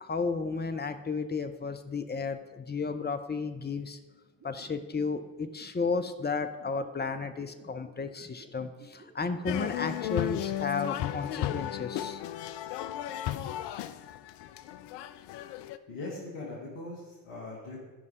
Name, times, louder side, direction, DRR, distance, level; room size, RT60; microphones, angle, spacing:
voice 1, 0.0-4.0 4.4-12.2, left 4 dB, 20° left, 8 dB, 0.8 m, -33 dB
sound 1, 4.4-10.3, right 4 dB, 35° right, 2.4 m, -53 dB
sound 2, 9.5-15.8, left 12 dB, 55° left, 0.6 m, -35 dB
voice 2, 15.9-17.8, left 2 dB, 75° left, -3 dB, 2.2 m, -40 dB
12.5 x 5.4 x 5.0 m, 1.2 s
hypercardioid pair, 50°, 50 cm